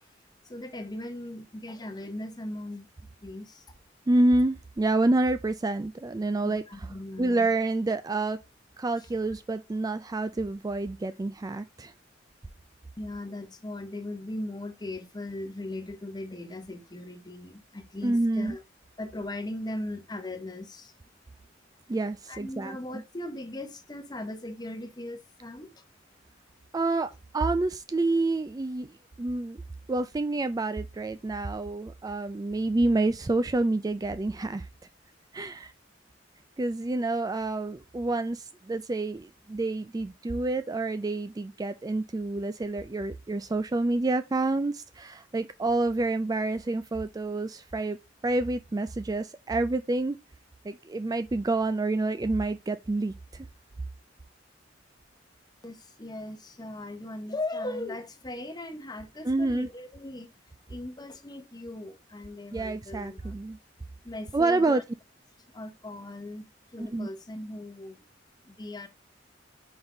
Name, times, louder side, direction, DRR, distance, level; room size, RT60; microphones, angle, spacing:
voice 1, 0.5-2.9 3.2-3.6 6.4-7.5 9.0-9.1 13.0-18.6 19.0-21.0 22.3-25.8 55.6-60.3 60.7-63.4 64.0-64.8 65.5-68.1 68.4-68.9, left 1 dB, 20° left, 0.9 m, -38 dB
voice 2, 4.1-6.9 7.2-8.4 8.8-11.9 18.0-18.6 21.9-23.0 26.7-29.6 29.9-34.7 35.3-35.7 36.6-48.0 48.2-50.2 50.6-53.5 59.3-59.7 62.5-63.6 64.3-64.8 66.8-67.1, right 2 dB, 20° right, 0.3 m, -28 dB
5.3 x 4.0 x 4.4 m
head